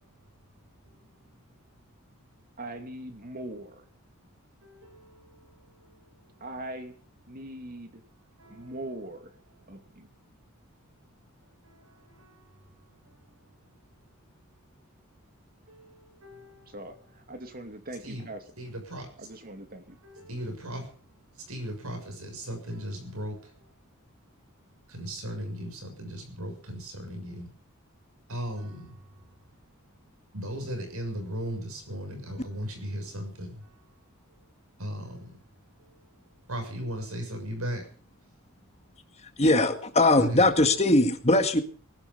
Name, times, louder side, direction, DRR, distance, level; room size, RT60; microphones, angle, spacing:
voice 1, 2.6-3.9 6.4-7.0 7.3-8.0 8.5-9.4 9.7-10.1 16.7-18.4 19.2-20.0, right 1 dB, 45° right, 6 dB, 2.6 m, -41 dB
voice 2, 4.6-5.4 8.4-8.6 12.2-12.3 15.7-16.6 18.0-18.2 18.6-19.1 20.0-20.8 21.5-23.4 24.9-27.5 28.3-28.9 30.3-33.5 34.8-35.3 36.5-37.8 40.2-40.4, equal, 85° right, 5 dB, 6.8 m, -37 dB
voice 3, 39.4-41.6, left 2 dB, 30° left, 7 dB, 1.9 m, -21 dB
20.0 x 12.5 x 5.5 m, 0.44 s
head